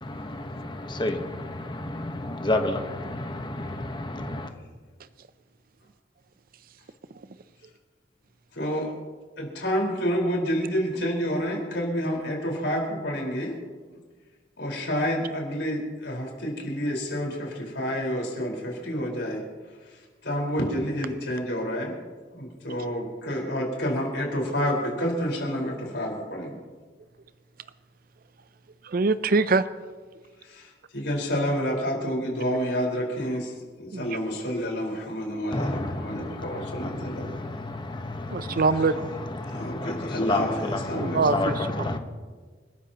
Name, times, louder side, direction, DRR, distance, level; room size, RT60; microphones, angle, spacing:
voice 1, 0.0-4.5 35.5-38.6 39.4-42.0, left 2 dB, 25° left, 5 dB, 1.1 m, -30 dB
voice 2, 8.5-8.9 9.4-13.5 14.6-19.4 20.2-21.9 22.3-26.5 30.9-33.5 33.8-37.3 39.5-41.2, equal, 75° left, -1 dB, 4.6 m, -29 dB
voice 3, 28.8-29.6 33.9-34.2 38.3-39.1 40.9-42.0, right 4 dB, 50° right, 13 dB, 0.5 m, -24 dB
29.5 x 13.0 x 2.9 m, 1.5 s
head